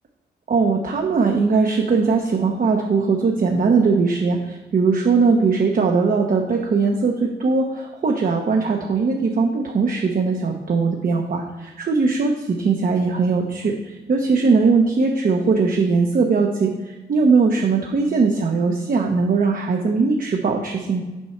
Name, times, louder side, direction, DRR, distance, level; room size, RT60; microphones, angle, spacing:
voice 1, 0.5-21.0, right 4 dB, 50° right, 2 dB, 0.9 m, -20 dB
7.4 x 4.6 x 4.4 m, 1.2 s
cardioid pair, 65°, 18 cm